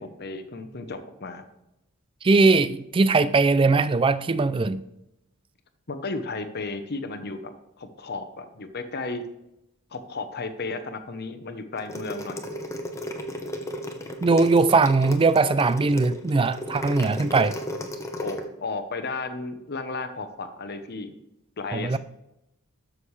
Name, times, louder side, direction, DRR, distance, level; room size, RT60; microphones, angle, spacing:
voice 1, 0.0-1.4 5.9-7.4 7.8-9.3 9.9-12.4 18.2-21.1 21.6-22.0, left 3 dB, 50° left, 9 dB, 0.9 m, -34 dB
voice 2, 2.2-4.8 14.2-17.5 21.7-22.0, right 3 dB, 25° right, 14 dB, 0.4 m, -20 dB
sound 1, 11.8-18.4, left 1 dB, 15° left, 0.9 m, -34 dB
12.5 x 6.4 x 3.3 m, 0.87 s
head